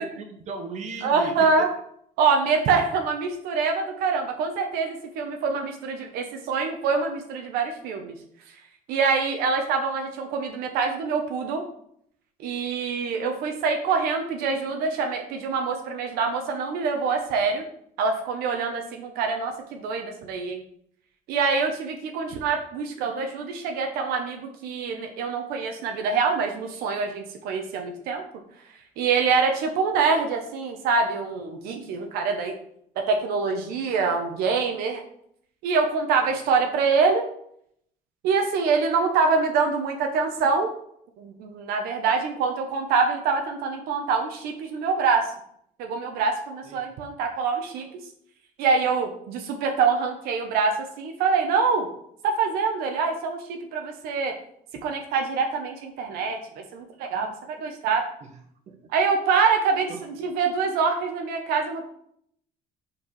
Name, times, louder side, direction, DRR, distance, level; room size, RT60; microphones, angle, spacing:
voice 1, 0.0-1.7 46.6-46.9 58.2-58.4 58.7-58.8 59.9-60.3, right 4 dB, 50° right, 4 dB, 1.3 m, -37 dB
voice 2, 1.0-1.7 2.2-8.1 8.9-11.6 12.4-17.6 18.0-20.6 21.3-28.2 29.0-32.6 33.0-35.0 35.6-37.3 38.2-40.7 41.2-45.3 45.8-47.9 48.6-51.9 52.2-54.3 54.8-56.4 56.7-58.0 58.9-59.9 60.2-61.9, right 5 dB, 90° right, 3 dB, 1.0 m, -25 dB
5.3 x 4.6 x 5.4 m, 0.69 s
cardioid pair, 130°, 15 cm